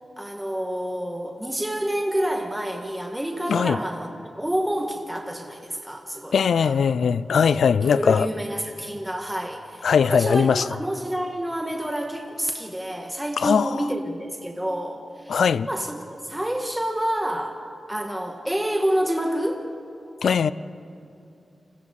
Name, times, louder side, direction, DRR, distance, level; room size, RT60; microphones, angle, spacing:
voice 1, 0.2-4.1 4.4-6.7 7.3-19.7, right 1 dB, 10° right, 1.7 m, -28 dB
voice 2, 6.3-8.3 9.8-10.6 13.4-13.7 15.3-15.7 20.2-20.5, left 6 dB, 80° left, 0.4 m, -20 dB
29.5 x 22.0 x 4.1 m
cardioid pair, 60°, 0 cm